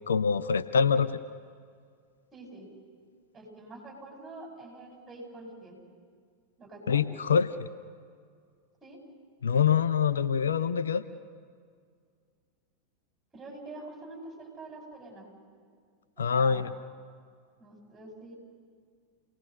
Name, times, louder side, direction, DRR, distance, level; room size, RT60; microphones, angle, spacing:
voice 1, 0.1-1.2 6.9-7.7 9.4-11.0 16.2-16.7, left 6 dB, 70° left, 12 dB, 0.7 m, -25 dB
voice 2, 2.3-2.7 3.3-5.8 6.6-7.1 8.8-9.0 13.3-15.3 16.2-16.7 17.6-18.4, right 2 dB, 20° right, 0 dB, 7.2 m, -46 dB
29.5 x 19.0 x 6.5 m, 2.1 s
figure-of-eight pair, 90°, 0 cm